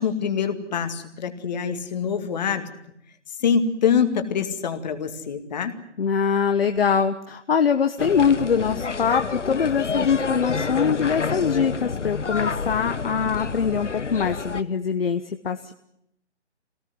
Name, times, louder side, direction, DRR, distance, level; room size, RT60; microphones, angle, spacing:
voice 1, 0.0-2.7 3.4-5.7, left 7 dB, 35° left, 8 dB, 2.3 m, -25 dB
voice 2, 6.0-15.7, left 6 dB, 55° left, 8 dB, 1.2 m, -23 dB
sound 1, 8.0-14.6, left 5 dB, 85° left, 1.1 m, -28 dB
24.5 x 18.5 x 9.8 m, 0.79 s
figure-of-eight pair, 150°, 35 cm